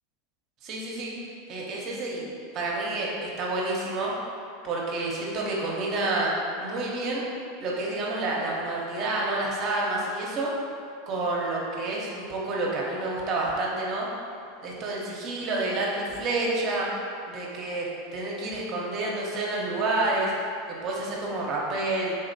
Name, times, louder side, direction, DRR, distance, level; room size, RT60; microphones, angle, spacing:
voice 1, 0.6-1.1 1.5-2.3 2.5-4.1 4.6-7.2 7.6-10.5 11.1-14.1 14.6-16.9 17.3-20.3 20.7-22.2, right 2 dB, 45° right, -3 dB, 0.7 m, -29 dB
3.8 x 2.8 x 2.7 m, 2.4 s
hypercardioid pair, 110°, 0 cm